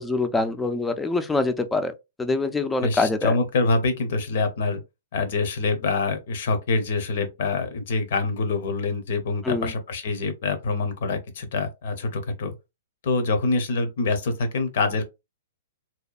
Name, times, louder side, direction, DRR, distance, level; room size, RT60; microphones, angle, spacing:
voice 1, 0.0-1.9 2.2-3.3 9.4-9.7, left 3 dB, 10° left, 0.3 m, -24 dB
voice 2, 2.8-4.8 5.1-12.5 13.0-15.0, left 3 dB, 60° left, 0.7 m, -25 dB
2.7 x 2.1 x 2.3 m
hypercardioid pair, 135°, 0 cm